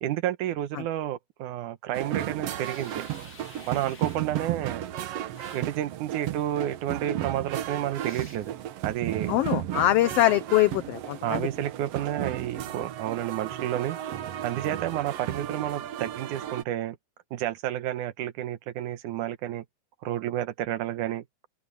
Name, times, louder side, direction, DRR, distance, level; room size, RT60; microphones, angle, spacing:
voice 1, 0.0-3.1 3.7-4.9 5.5-8.6 8.8-9.4 11.2-14.0 14.4-17.0 17.3-19.6 20.0-21.2, right 12 dB, 90° right, 2.5 m, -30 dB
sound 1, 1.9-16.6, right 12 dB, 65° right, 1.9 m, -34 dB
sound 2, 2.6-4.3 5.4-5.8 8.0-8.5, left 3 dB, 35° left, 3.9 m, -50 dB
voice 2, 9.3-11.4, left 14 dB, 85° left, 1.3 m, -23 dB
open air
omnidirectional pair, 3.5 m